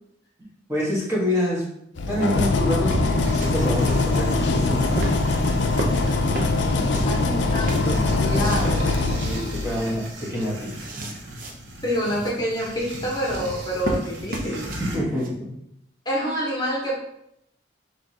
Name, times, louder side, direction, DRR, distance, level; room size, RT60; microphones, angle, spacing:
voice 1, 0.7-1.7 2.1-5.0 9.2-10.7 14.8-15.5, left 1 dB, 15° right, -6 dB, 1.1 m, -26 dB
sound 1, 2.0-9.9, left 3 dB, 75° left, 0.5 m, -22 dB
sound 2, 2.1-7.2 7.4-8.7 9.0-9.4 9.8-9.9 10.2-11.5 11.9-12.3 13.1-15.3, right 1 dB, 50° right, 0.7 m, -32 dB
sound 3, 3.2-15.0, right 1 dB, 85° right, 0.9 m, -38 dB
voice 2, 6.7-9.1 11.8-14.7 16.0-16.9, equal, 20° left, -4 dB, 1.0 m, -27 dB
5.5 x 3.1 x 2.7 m, 0.77 s
head